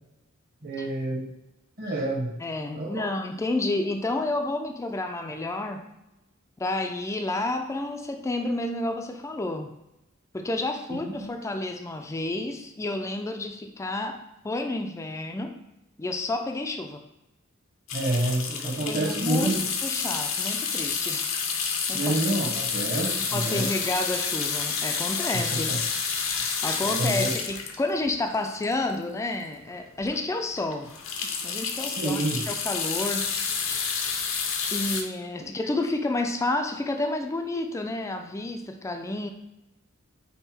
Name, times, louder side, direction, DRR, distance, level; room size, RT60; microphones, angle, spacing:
voice 1, 0.6-1.3 1.8-2.3 2.7-2.9 10.9-11.3 17.9-19.6 21.9-23.7 25.5-25.8 26.8-27.3 31.8-32.4, right 1 dB, 45° right, -1 dB, 1.0 m, -28 dB
voice 2, 2.4-5.9 6.6-9.7 10.3-15.6 16.0-17.0 18.5-19.6 19.8-21.3 21.9-22.2 23.3-25.7 26.3-30.9 31.4-32.2 32.5-33.7 34.7-39.3, left 2 dB, 15° left, 4 dB, 0.3 m, -30 dB
sound 1, 17.9-29.2 29.7-29.8 30.0-30.2 30.5-35.0, left 5 dB, 70° left, 0.6 m, -29 dB
5.4 x 2.1 x 4.3 m, 0.91 s
head